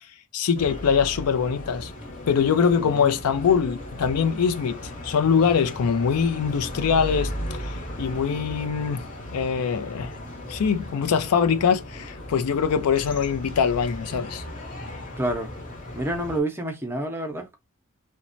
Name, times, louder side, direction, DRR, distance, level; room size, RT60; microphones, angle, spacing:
voice 1, 0.3-1.9 2.3-4.8 5.0-9.1 9.3-10.1 10.5-14.4, left 6 dB, 90° left, 0.4 m, -23 dB
sound 1, 0.5-16.4, left 1 dB, 35° left, 0.9 m, -36 dB
voice 2, 2.8-3.1 15.2-15.5 15.9-17.6, right 1 dB, 10° right, 0.6 m, -28 dB
3.0 x 2.1 x 2.5 m
head